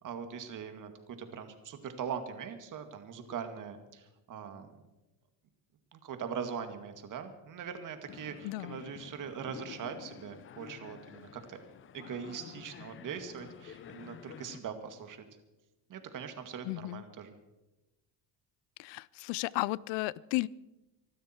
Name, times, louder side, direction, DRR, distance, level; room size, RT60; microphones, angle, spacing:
voice 1, 0.0-4.7 5.9-11.6 11.9-15.2 15.9-17.3, right 7 dB, 45° right, 7 dB, 2.1 m, -41 dB
sound 1, 8.1-14.6, left 9 dB, 30° left, 0.5 m, -50 dB
voice 2, 8.4-8.8 16.6-17.0 18.8-20.5, left 20 dB, 90° left, 23 dB, 0.6 m, -34 dB
24.5 x 12.5 x 4.5 m, 1.0 s
cardioid pair, 130°, 43 cm